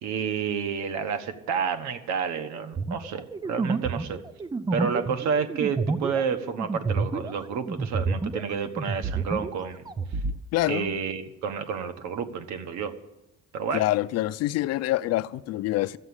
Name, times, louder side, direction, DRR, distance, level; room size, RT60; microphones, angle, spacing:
voice 1, 0.0-4.2 4.7-9.8 10.6-12.9 13.5-13.8, right 6 dB, 70° right, 9 dB, 1.4 m, -30 dB
sound 1, 2.7-8.5 8.8-10.4, right 4 dB, 15° right, 0.6 m, -29 dB
voice 2, 10.5-10.9 13.7-16.0, left 16 dB, 60° left, 15 dB, 0.5 m, -26 dB
13.5 x 8.2 x 9.7 m, 1.0 s
cardioid pair, 150°, 29 cm